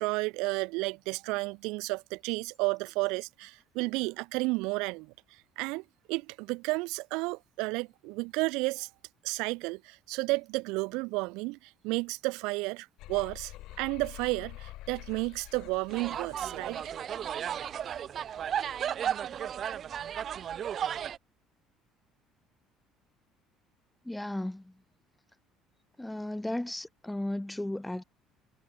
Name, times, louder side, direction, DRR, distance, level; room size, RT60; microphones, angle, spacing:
voice 1, 0.0-5.1 5.6-8.9 9.2-16.8, right 25 dB, 85° right, 0.8 m, -32 dB
sound 1, 13.0-18.1, left 17 dB, 65° left, 2.9 m, -48 dB
sound 2, 15.9-21.2, right 9 dB, 40° right, 1.8 m, -34 dB
voice 2, 24.0-24.7 26.0-28.0, left 1 dB, 5° left, 2.3 m, -35 dB
cardioid pair, 150°, 0 cm